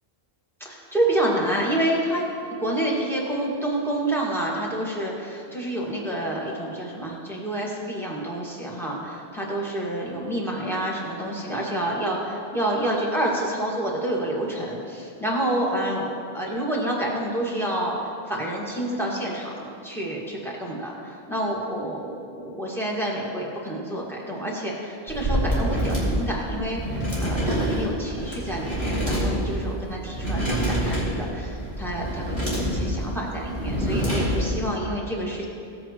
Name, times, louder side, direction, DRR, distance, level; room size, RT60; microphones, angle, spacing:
voice 1, 0.6-2.2 2.6-17.9 18.3-35.5, right 1 dB, ahead, -4 dB, 1.7 m, -28 dB
sound 1, 25.1-34.7, equal, 40° left, 2.5 m, -26 dB
16.5 x 8.3 x 3.0 m, 2.5 s
omnidirectional pair, 1.1 m